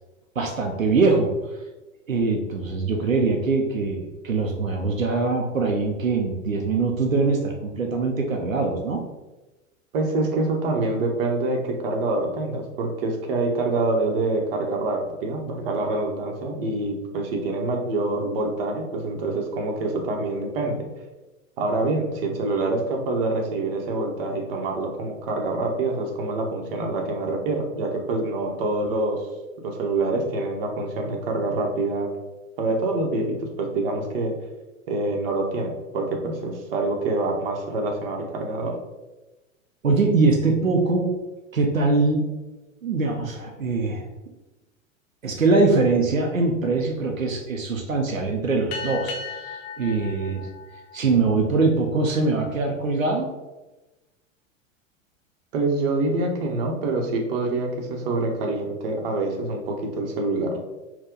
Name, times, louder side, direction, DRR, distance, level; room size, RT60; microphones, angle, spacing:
voice 1, 0.4-1.3 2.1-9.0 39.8-41.1 41.5-42.3 42.8-44.1 45.2-50.5 50.9-53.3, right 3 dB, 85° right, 2 dB, 0.6 m, -22 dB
voice 2, 9.9-20.8 21.6-29.2 29.6-32.1 32.6-34.3 34.9-38.7 55.5-60.6, right 2 dB, 45° right, 1 dB, 0.9 m, -26 dB
sound 1, 48.7-51.7, left 5 dB, 30° left, 0.5 m, -36 dB
4.2 x 2.2 x 3.7 m, 1.1 s
figure-of-eight pair, 90°, 39 cm